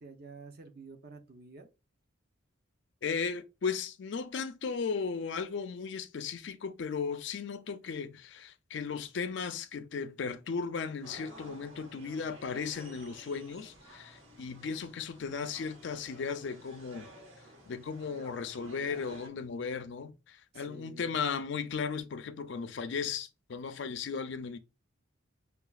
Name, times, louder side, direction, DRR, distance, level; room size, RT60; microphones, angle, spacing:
voice 1, 0.0-1.7 20.5-21.3, right 3 dB, 45° right, 0.6 m, -50 dB
voice 2, 3.0-17.1 17.7-24.6, left 5 dB, 60° left, 0.4 m, -36 dB
sound 1, 11.0-19.3, equal, 75° right, 1.3 m, -53 dB
5.6 x 2.3 x 2.3 m
head